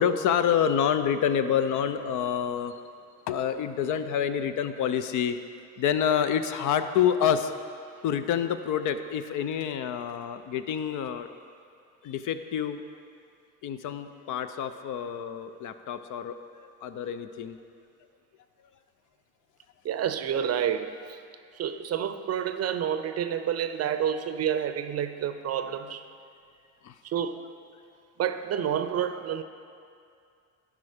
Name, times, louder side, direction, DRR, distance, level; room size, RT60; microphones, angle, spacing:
voice 1, 0.0-2.8 3.3-5.4 5.8-7.5 8.0-11.3 12.0-12.8 13.6-17.6 26.8-26.9, left 8 dB, 60° left, 10 dB, 0.6 m, -27 dB
voice 2, 19.8-21.2 21.5-26.0 27.0-27.6 28.2-29.4, right 9 dB, 45° right, 10 dB, 0.6 m, -29 dB
11.5 x 4.9 x 5.0 m, 2.4 s
supercardioid pair, 80°, 34 cm